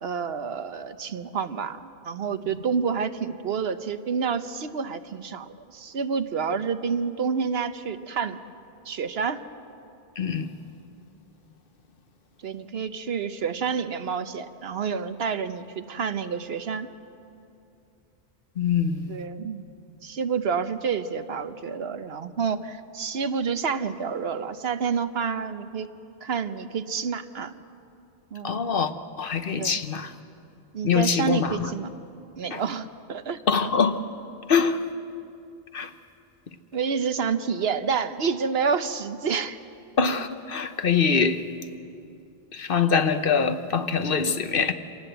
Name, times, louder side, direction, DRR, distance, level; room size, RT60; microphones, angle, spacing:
voice 1, 0.0-8.4 8.9-9.4 12.4-16.9 19.1-19.7 20.0-25.9 26.2-27.5 28.3-28.6 29.6-29.8 30.7-31.9 32.3-33.4 36.7-39.6, right 6 dB, 70° right, 1.1 m, -29 dB
voice 2, 10.2-10.5 18.6-19.1 28.4-28.9 29.2-30.1 30.8-31.7 32.5-32.6 33.5-34.0 34.5-34.8 35.7-35.9 40.0-41.4 42.5-44.7, left 6 dB, 60° left, 1.1 m, -24 dB
27.0 x 18.5 x 8.0 m
omnidirectional pair, 1.1 m